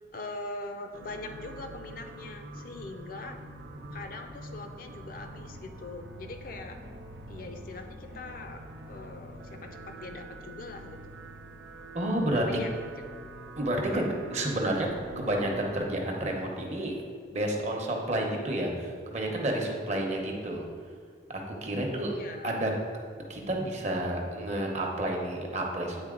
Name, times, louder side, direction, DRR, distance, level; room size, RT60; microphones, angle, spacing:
voice 1, 0.1-3.4 3.9-6.8 7.3-8.6 8.9-11.0 12.3-13.3 22.1-22.5, left 2 dB, 50° left, 5 dB, 0.5 m, -42 dB
sound 1, 0.9-15.8, right 1 dB, 85° right, 0.7 m, -45 dB
voice 2, 11.9-12.5 13.6-14.9 15.2-16.9 17.3-20.6 21.3-22.1 22.4-22.7 23.3-26.1, right 1 dB, 40° right, 0 dB, 0.9 m, -30 dB
8.9 x 3.8 x 3.8 m, 2.1 s
head